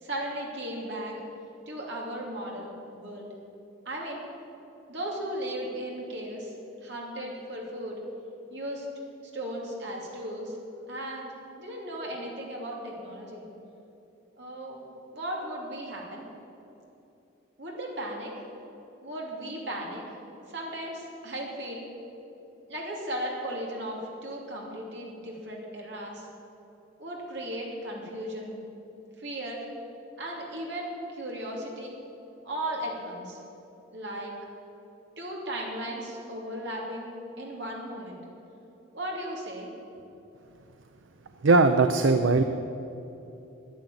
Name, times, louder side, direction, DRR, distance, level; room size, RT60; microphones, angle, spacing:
voice 1, 0.0-1.2 1.7-3.3 3.8-4.2 4.9-6.5 6.8-8.0 8.5-8.9 9.3-10.6 10.9-13.4 14.4-14.9 15.1-16.2 17.6-18.3 19.0-20.0 20.5-21.9 22.7-26.3 27.0-28.6 29.2-29.7 30.2-32.0 32.4-33.4 33.9-34.4 35.2-37.1 37.4-38.2 38.9-39.7, right 1 dB, 60° right, -2 dB, 2.7 m, -36 dB
voice 2, 41.4-42.4, right 3 dB, 80° right, 8 dB, 0.6 m, -19 dB
11.5 x 9.4 x 9.2 m, 2.9 s
head